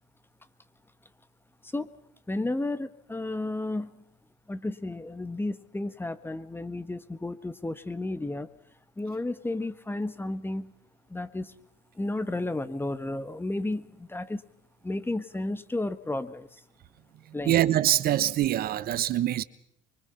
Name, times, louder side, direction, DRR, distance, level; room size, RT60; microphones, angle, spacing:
voice 1, 2.3-4.0 4.5-8.5 9.0-10.7 11.1-11.5 11.9-14.4 14.8-16.6 17.3-17.5, left 2 dB, 10° left, 1.5 m, -32 dB
voice 2, 17.4-19.4, right 13 dB, 60° right, 1.1 m, -24 dB
24.5 x 24.0 x 5.8 m
supercardioid pair, 75°, 18 cm